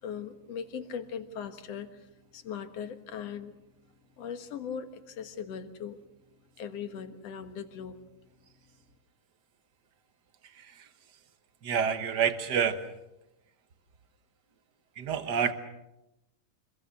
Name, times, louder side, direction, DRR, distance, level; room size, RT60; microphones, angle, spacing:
voice 1, 0.0-3.6 4.2-6.0 6.6-8.0, left 7 dB, 55° left, 8 dB, 2.2 m, -39 dB
voice 2, 11.6-12.8 15.0-15.5, right 7 dB, 70° right, 9 dB, 1.0 m, -28 dB
25.5 x 22.0 x 6.7 m, 0.92 s
omnidirectional pair, 3.8 m